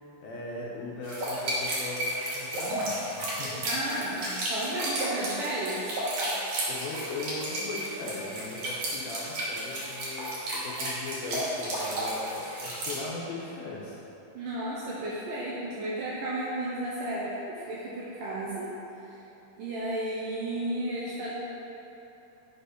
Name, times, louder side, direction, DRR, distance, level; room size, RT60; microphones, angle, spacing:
voice 1, 0.2-3.7 6.7-14.0, left 3 dB, 75° left, -4 dB, 2.4 m, -38 dB
sound 1, 1.0-13.1, right 1 dB, 60° right, 2.3 m, -33 dB
voice 2, 3.6-5.9 14.3-18.7 19.1-19.2 19.6-21.3, right 1 dB, 80° right, -6 dB, 2.0 m, -33 dB
7.1 x 4.6 x 5.1 m, 3.0 s
omnidirectional pair, 4.7 m